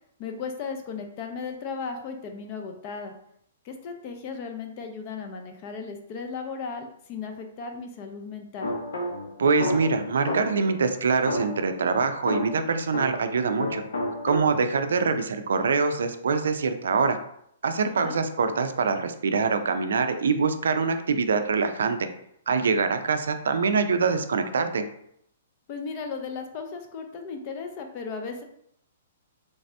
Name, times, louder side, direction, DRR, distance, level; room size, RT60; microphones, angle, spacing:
voice 1, 0.2-3.1 3.6-8.7 17.8-18.2 25.7-28.4, left 5 dB, 30° left, 4 dB, 0.4 m, -36 dB
sound 1, 8.6-10.8 11.3-13.4 13.6-14.8, left 1 dB, 90° left, 0.7 m, -31 dB
voice 2, 9.4-13.8 14.2-17.2 17.6-22.0 22.5-24.8, right 4 dB, 85° right, 8 dB, 0.4 m, -24 dB
3.2 x 2.7 x 3.2 m, 0.71 s
hypercardioid pair, 170°, 0 cm